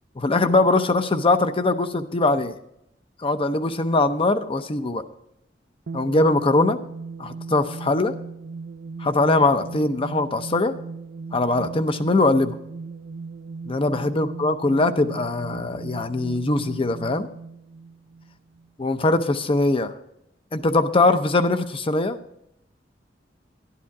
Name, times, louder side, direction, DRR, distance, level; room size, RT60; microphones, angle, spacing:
voice 1, 0.2-2.5 3.2-5.0 5.9-6.8 7.2-8.1 9.0-10.7 11.3-12.5 13.7-17.3 18.8-20.0 20.5-22.2, left 2 dB, 30° left, 10 dB, 0.7 m, -21 dB
sound 1, 5.9-18.7, right 4 dB, 60° right, 0.5 m, -38 dB
11.5 x 11.5 x 4.7 m, 0.77 s
head